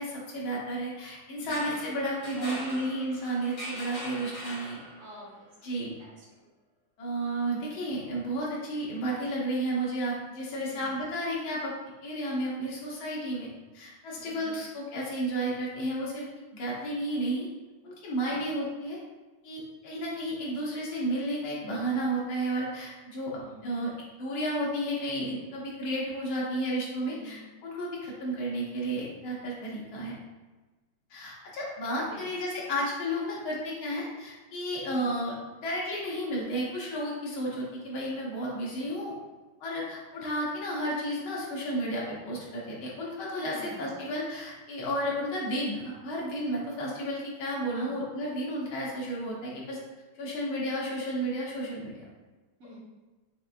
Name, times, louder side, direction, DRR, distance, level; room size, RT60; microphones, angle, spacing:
voice 1, 0.0-4.8 5.6-5.9 7.0-11.7 12.0-13.5 13.7-16.3 16.5-17.5 17.8-19.0 19.4-23.9 24.2-30.2 31.1-39.2 39.6-49.8 50.2-52.0, right 1 dB, 80° left, -4 dB, 1.9 m, -32 dB
voice 2, 1.3-1.8 2.4-2.8 5.0-5.5 6.0-6.4 10.6-11.0 14.2-14.6 18.2-18.5 23.4-23.8 26.9-27.5 32.0-32.3 43.4-43.9 47.7-48.1 52.6-52.8, equal, 40° right, -9 dB, 1.3 m, -48 dB
sound 1, 1.4-5.2, equal, 40° left, 1.6 m, -41 dB
5.5 x 3.3 x 2.5 m, 1.2 s
omnidirectional pair, 2.2 m